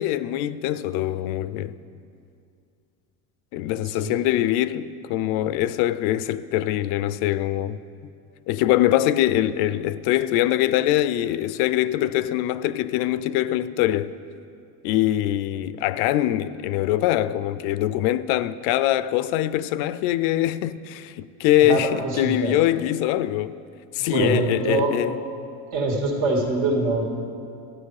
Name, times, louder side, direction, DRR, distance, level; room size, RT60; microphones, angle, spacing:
voice 1, 0.0-1.7 3.5-7.8 8.5-14.2 14.8-23.6 23.9-25.2, left 13 dB, 80° left, 0.5 m, -23 dB
voice 2, 21.6-22.5 24.1-24.9 25.7-27.2, right 2 dB, 75° right, 2.1 m, -24 dB
13.0 x 9.0 x 4.8 m
cardioid pair, 160°, 35 cm